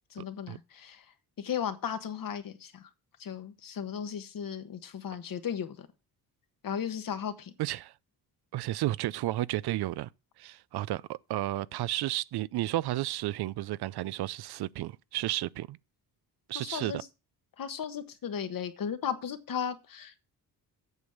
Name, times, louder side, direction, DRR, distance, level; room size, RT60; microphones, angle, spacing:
voice 1, 0.1-1.0 1.4-2.8 3.2-5.9 6.6-7.5 16.5-17.1 17.6-20.2, left 8 dB, 60° left, 1.4 m, -36 dB
voice 2, 7.6-7.9 8.5-10.1 10.4-15.8 16.5-17.0, right 15 dB, 80° right, 0.5 m, -32 dB
8.2 x 7.2 x 6.6 m
cardioid pair, 105°, 38 cm